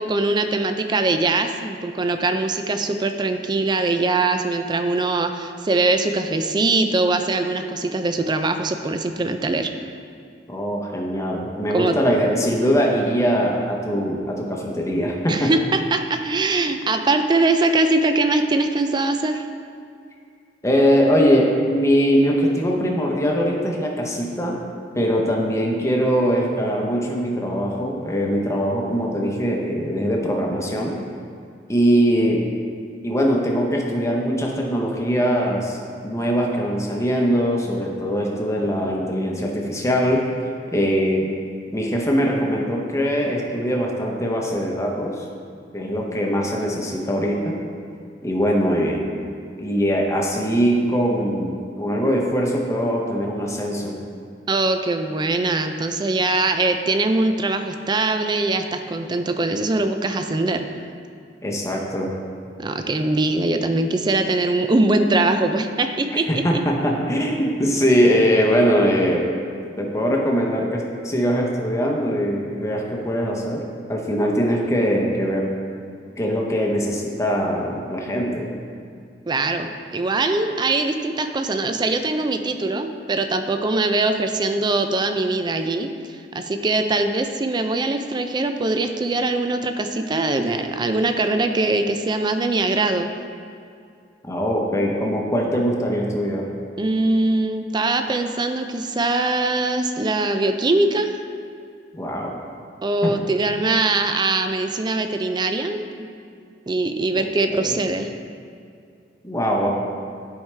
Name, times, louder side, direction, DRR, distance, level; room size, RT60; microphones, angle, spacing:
voice 1, 0.0-9.7 11.7-12.0 15.3-19.5 54.5-60.7 62.6-66.4 79.3-85.9 86.3-93.1 96.8-101.1 102.8-106.1 106.7-108.1, right 2 dB, 25° right, 7 dB, 0.4 m, -22 dB
voice 2, 10.5-15.5 20.6-24.7 24.9-31.0 31.7-32.4 33.0-35.8 36.0-40.3 40.7-41.3 41.7-45.2 45.7-47.6 48.2-49.1 49.6-54.0 61.4-62.1 66.1-69.3 69.8-73.6 73.9-75.5 76.2-78.5 94.3-96.5 101.9-102.3 103.0-103.2 107.5-107.8 109.2-109.7, equal, 15° left, -1 dB, 0.9 m, -21 dB
10.5 x 4.8 x 3.3 m, 2.3 s
head